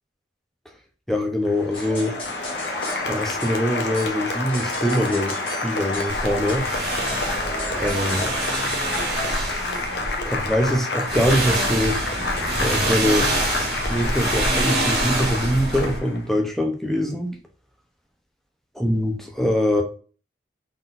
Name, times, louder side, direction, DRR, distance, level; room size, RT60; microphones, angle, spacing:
voice 1, 1.1-2.2 3.1-6.6 7.7-8.4 9.3-9.8 10.2-12.0 12.6-13.3 13.8-17.3 18.8-19.8, equal, ahead, 0.8 m, -23 dB
Applause, 1.5-16.3, left 3 dB, 70° left, 0.8 m, -29 dB
sound 1, 1.7-9.4, equal, 30° left, 1.4 m, -34 dB
sound 2, 6.1-10.8 11.1-16.0, right 1 dB, 60° right, 1.6 m, -26 dB
4.0 x 3.7 x 2.5 m
head